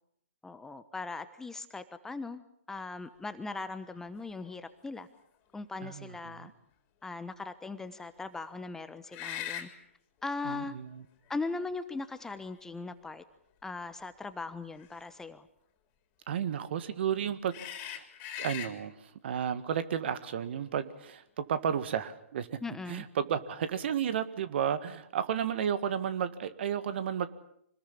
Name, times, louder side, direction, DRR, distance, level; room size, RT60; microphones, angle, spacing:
voice 1, 0.4-2.4 2.7-5.1 5.5-6.5 7.0-9.7 10.2-10.7 11.3-13.2 13.6-15.5 22.6-23.0, left 3 dB, 5° left, 11 dB, 1.1 m, -39 dB
sound 1, 3.9-4.0 4.5-4.6 9.1-9.7 10.9-11.0 12.0-12.8 14.8-15.0 17.5-18.7, left 10 dB, 30° left, 3.7 m, -40 dB
voice 2, 5.8-6.5 10.4-11.0 16.3-17.6 17.8-18.1 18.4-22.6 22.9-27.3, right 8 dB, 50° right, 13 dB, 1.8 m, -33 dB
25.5 x 20.0 x 8.6 m, 0.71 s
hypercardioid pair, 135°, 7 cm